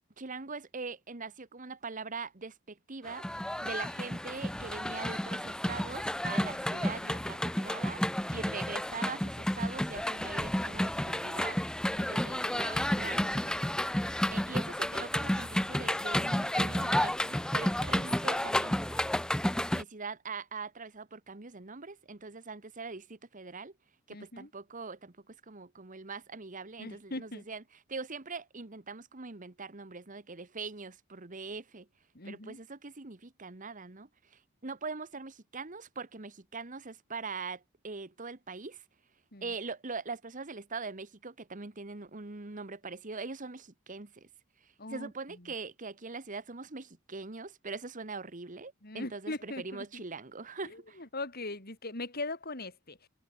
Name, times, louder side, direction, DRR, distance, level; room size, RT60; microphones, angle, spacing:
voice 1, 0.2-8.0 8.3-11.6 12.0-13.8 14.3-18.8 19.7-23.7 24.1-27.6 27.9-31.9 32.2-38.8 39.4-44.3 44.6-51.0, right 4 dB, 40° right, 1.4 m, -42 dB
sound 1, 3.1-19.8, left 1 dB, 5° left, 0.4 m, -31 dB
voice 2, 24.1-24.5 26.8-27.4 32.1-32.6 39.3-39.5 44.8-45.1 45.4-45.5 48.8-50.0 50.6-53.1, left 2 dB, 50° left, 5.1 m, -40 dB
head